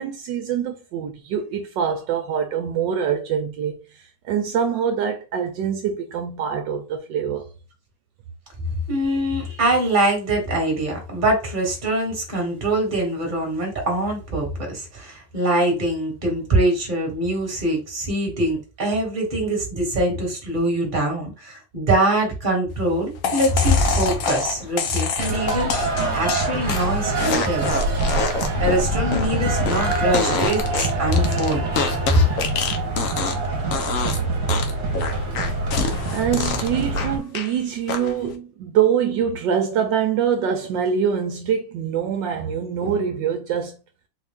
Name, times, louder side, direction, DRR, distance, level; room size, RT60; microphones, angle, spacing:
voice 1, 0.0-7.5 34.0-34.7 36.1-43.8, right 8 dB, 75° right, 1.3 m, -24 dB
voice 2, 8.9-27.8 28.6-31.6, right 1 dB, 30° right, 1.5 m, -23 dB
sound 1, 23.2-33.5 33.7-34.2 34.5-37.5 37.9-38.3, left 5 dB, 60° left, 0.8 m, -26 dB
sound 2, 23.4-25.0, equal, 80° left, 1.5 m, -27 dB
sound 3, 25.2-37.2, right 2 dB, 45° right, 1.4 m, -25 dB
4.2 x 2.5 x 3.5 m
omnidirectional pair, 2.0 m